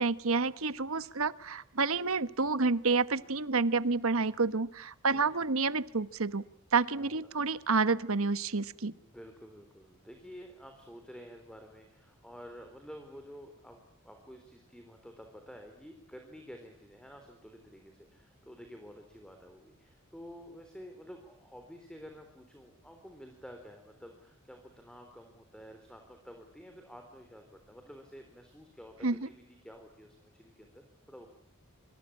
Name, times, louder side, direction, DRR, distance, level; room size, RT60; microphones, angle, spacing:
voice 1, 0.0-6.4 6.7-8.9 29.0-29.3, right 4 dB, 75° right, 14 dB, 1.2 m, -29 dB
voice 2, 5.1-5.5 7.0-7.5 9.0-31.3, equal, 5° left, 5 dB, 3.7 m, -51 dB
26.0 x 26.0 x 8.6 m, 0.64 s
head